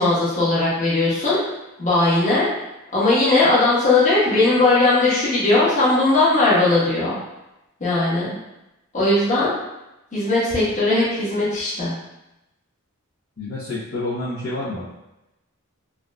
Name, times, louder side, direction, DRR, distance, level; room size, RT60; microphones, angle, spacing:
voice 1, 0.0-1.4 1.8-2.5 2.9-7.2 7.8-8.4 8.9-9.5 10.1-11.9, left 2 dB, 35° left, -9 dB, 1.1 m, -18 dB
voice 2, 13.4-14.9, left 2 dB, 55° left, -11 dB, 0.8 m, -28 dB
3.6 x 2.4 x 2.2 m, 0.94 s
head